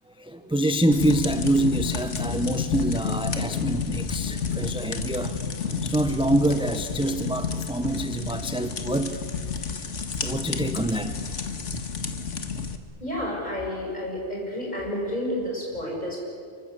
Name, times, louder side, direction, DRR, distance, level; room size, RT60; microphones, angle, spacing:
voice 1, 0.2-5.4 5.8-9.1 9.7-9.8 10.2-11.4, right 1 dB, 5° right, 8 dB, 0.8 m, -26 dB
sound 1, 0.9-12.8, left 5 dB, 80° left, 1.9 m, -30 dB
voice 2, 13.0-16.2, left 1 dB, 35° left, -2 dB, 8.2 m, -30 dB
27.0 x 24.5 x 8.4 m, 2.3 s
omnidirectional pair, 1.2 m